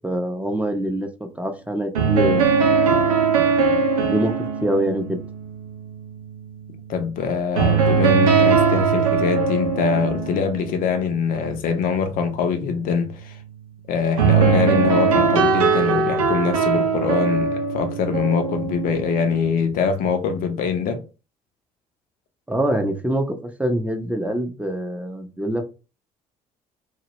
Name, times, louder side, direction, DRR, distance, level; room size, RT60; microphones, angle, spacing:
voice 1, 0.0-2.7 3.4-5.2 22.5-25.7, right 1 dB, 10° right, 0.5 m, -25 dB
sound 1, 1.9-6.8 7.5-11.3 14.2-19.7, right 5 dB, 80° right, 0.5 m, -20 dB
voice 2, 6.9-13.3 13.9-21.0, left 6 dB, 50° left, 0.5 m, -23 dB
2.1 x 2.0 x 2.9 m
figure-of-eight pair, 50°, 18 cm